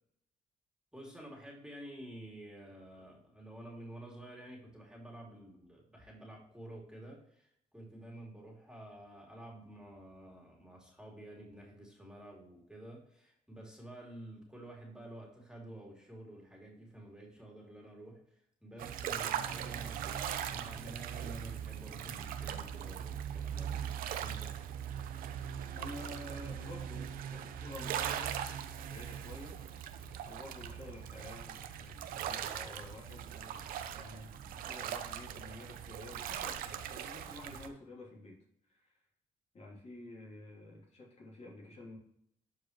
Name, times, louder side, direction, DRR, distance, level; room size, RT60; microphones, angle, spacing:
voice 1, 0.9-18.2 18.6-24.5, right 1 dB, 5° right, -1 dB, 2.8 m, -50 dB
sound 1, 18.8-37.7, right 9 dB, 90° right, 0.7 m, -40 dB
voice 2, 25.7-28.4 28.8-29.6 30.3-38.4 38.6-39.0 39.5-42.0, left 1 dB, 50° left, -3 dB, 3.1 m, -50 dB
11.5 x 4.8 x 3.1 m, 0.71 s
cardioid pair, 90°, 14 cm